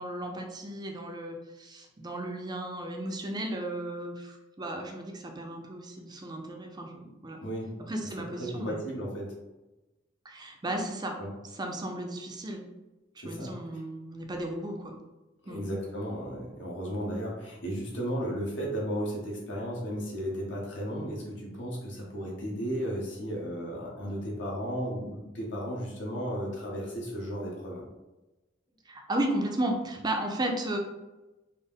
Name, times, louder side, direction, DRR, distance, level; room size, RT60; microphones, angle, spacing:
voice 1, 0.0-7.4 7.8-8.8 10.2-11.2 11.5-12.6 13.2-15.0 15.5-15.6 28.9-30.8, right 1 dB, 20° right, 3 dB, 0.4 m, -34 dB
voice 2, 8.4-9.3 11.2-11.3 13.2-13.8 15.4-27.8, equal, 75° left, -3 dB, 1.1 m, -34 dB
4.1 x 2.0 x 3.5 m, 1.0 s
head